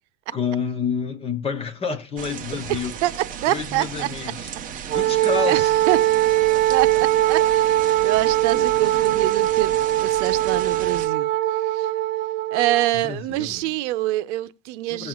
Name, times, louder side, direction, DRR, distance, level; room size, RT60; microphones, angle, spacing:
voice 1, 0.3-2.9 3.5-4.5 4.9-5.7 8.3-8.7 12.9-13.7 14.9-15.1, left 6 dB, 15° left, 0.9 m, -29 dB
sound 1, 2.2-11.1, right 8 dB, 20° right, 1.0 m, -35 dB
voice 2, 2.7-4.1 4.7-5.0 5.5-6.2 6.7-11.3 11.6-11.9 12.5-15.1, right 16 dB, 65° right, 0.9 m, -26 dB
Wind instrument woodwind instrument, 4.9-12.9, right 14 dB, 50° right, 1.6 m, -21 dB
18.0 x 7.6 x 2.4 m
cardioid pair, 180°, 37 cm